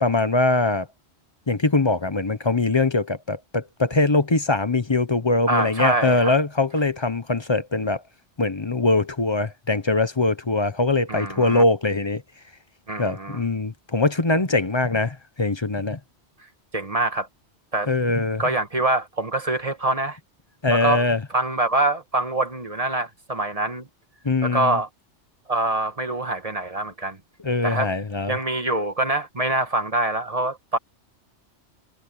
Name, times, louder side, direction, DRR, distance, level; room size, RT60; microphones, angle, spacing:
voice 1, 0.0-0.9 1.5-8.0 8.4-12.2 13.0-16.0 17.9-18.4 20.6-21.2 24.2-24.8 27.4-28.4, left 2 dB, 25° left, 0.8 m, -22 dB
voice 2, 5.5-6.3 11.1-11.6 12.9-13.4 16.7-17.3 17.7-17.9 18.4-20.2 20.7-21.0 21.3-23.9 24.4-24.9 25.5-27.2 27.6-27.9 28.3-30.8, right 2 dB, 30° right, 1.7 m, -25 dB
omnidirectional pair, 1.2 m